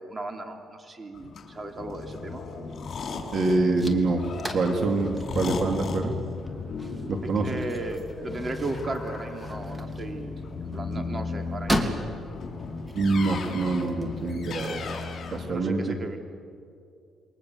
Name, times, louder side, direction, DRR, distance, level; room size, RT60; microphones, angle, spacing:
voice 1, 0.0-2.4 7.4-12.0 15.5-16.2, right 2 dB, 30° right, 5 dB, 3.2 m, -36 dB
sound 1, 1.1-15.5, left 4 dB, 55° left, 5.4 m, -36 dB
sound 2, 2.8-15.2, equal, 10° right, 2.9 m, -37 dB
voice 2, 3.3-4.2 4.5-6.1 7.1-7.6 12.9-14.8 15.3-16.0, right 3 dB, 55° right, 4 dB, 2.8 m, -25 dB
28.5 x 22.5 x 8.0 m, 2.4 s
cardioid pair, 90°, 0 cm